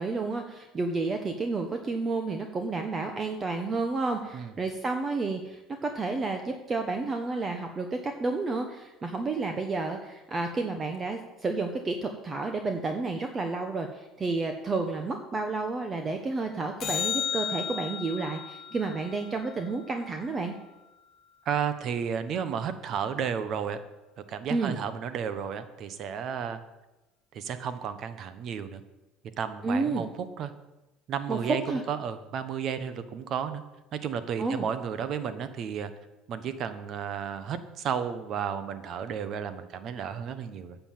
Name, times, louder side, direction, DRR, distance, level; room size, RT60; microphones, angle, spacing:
voice 1, 0.0-20.5 24.5-24.8 29.6-30.0 31.3-31.8 34.4-34.7, right 3 dB, 25° right, 5 dB, 1.1 m, -31 dB
sound 1, 16.8-21.3 27.8-27.9, left 8 dB, 40° left, 1.2 m, -36 dB
voice 2, 21.4-23.8 24.3-26.6 27.3-28.8 29.4-30.5 31.1-33.6 33.9-35.9 36.3-40.8, right 7 dB, 50° right, 11 dB, 1.1 m, -33 dB
9.8 x 7.0 x 7.7 m, 1.0 s
supercardioid pair, 110°, 0 cm